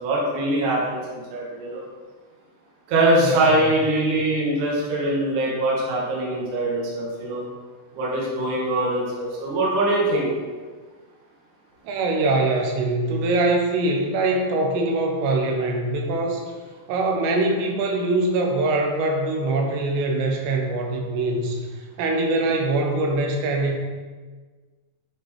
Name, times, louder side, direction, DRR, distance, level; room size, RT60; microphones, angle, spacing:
voice 1, 0.0-1.8 2.9-7.4 7.9-10.3, right 1 dB, 60° right, -4 dB, 2.4 m, -23 dB
voice 2, 3.2-3.6 11.8-16.4 16.9-21.6 22.0-23.8, right 2 dB, 80° right, 1 dB, 3.0 m, -23 dB
9.0 x 4.4 x 3.3 m, 1.4 s
omnidirectional pair, 5.0 m